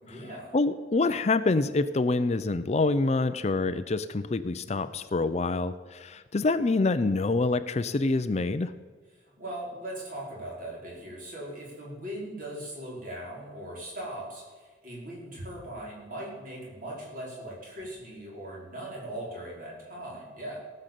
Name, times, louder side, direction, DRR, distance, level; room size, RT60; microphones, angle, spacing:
voice 1, 0.0-0.5 9.2-20.6, right 1 dB, 50° right, -4 dB, 5.1 m, -39 dB
voice 2, 0.5-8.7, left 3 dB, 35° left, 12 dB, 0.5 m, -26 dB
17.5 x 6.6 x 7.6 m, 1.5 s
head